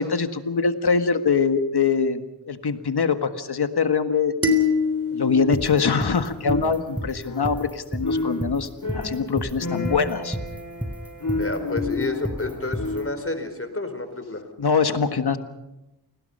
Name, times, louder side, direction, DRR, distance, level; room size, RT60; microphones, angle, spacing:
voice 1, 0.0-2.2 2.5-4.3 5.1-10.4 14.6-15.4, left 5 dB, 80° left, 9 dB, 1.7 m, -23 dB
sound 1, 4.4-6.8, left 4 dB, 35° right, 3.6 m, -25 dB
sound 2, 5.5-13.0, equal, 5° right, 3.5 m, -31 dB
sound 3, 6.4-13.3, left 3 dB, 55° left, 3.0 m, -31 dB
voice 2, 11.3-14.4, left 2 dB, 35° left, 8 dB, 4.7 m, -30 dB
29.0 x 19.5 x 5.6 m, 0.95 s
cardioid pair, 45°, 39 cm